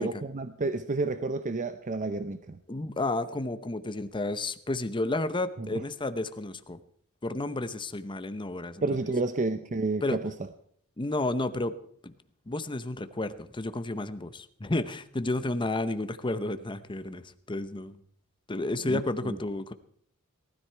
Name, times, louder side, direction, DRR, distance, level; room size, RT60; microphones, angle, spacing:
voice 1, 0.0-2.6 5.6-5.8 8.8-10.3 18.8-19.4, right 3 dB, 35° right, 10 dB, 0.7 m, -30 dB
voice 2, 2.7-6.8 7.2-8.8 10.0-10.2 11.0-11.7 12.0-12.1 12.5-18.0 18.5-19.7, left 2 dB, 20° left, 11 dB, 0.8 m, -31 dB
19.0 x 13.0 x 4.5 m, 0.64 s
head